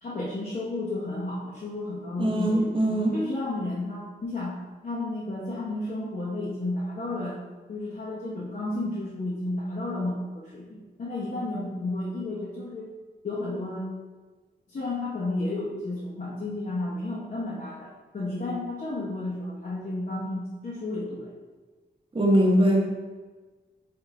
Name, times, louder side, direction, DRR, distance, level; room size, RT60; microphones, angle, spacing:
voice 1, 0.0-2.8 3.1-4.6 4.8-7.4 7.7-12.9 13.2-13.9 14.7-21.3, left 2 dB, 50° left, -7 dB, 1.3 m, -32 dB
voice 2, 2.2-3.2 22.1-22.9, right 1 dB, 25° right, -1 dB, 1.0 m, -21 dB
8.9 x 3.0 x 3.6 m, 1.3 s
wide cardioid pair, 175°, 19 cm